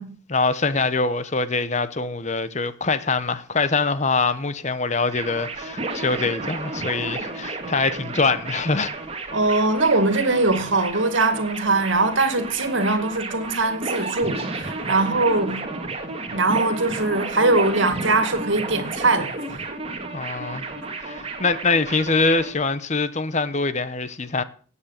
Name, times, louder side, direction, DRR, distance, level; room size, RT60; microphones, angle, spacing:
voice 1, 0.3-8.9 20.1-20.6 21.0-24.4, left 3 dB, 35° left, 0.9 m, -24 dB
sound 1, 5.1-22.5, right 3 dB, 30° right, 2.3 m, -32 dB
voice 2, 9.3-15.7 16.3-19.3, right 2 dB, 75° right, 2.2 m, -21 dB
17.5 x 8.5 x 6.6 m
head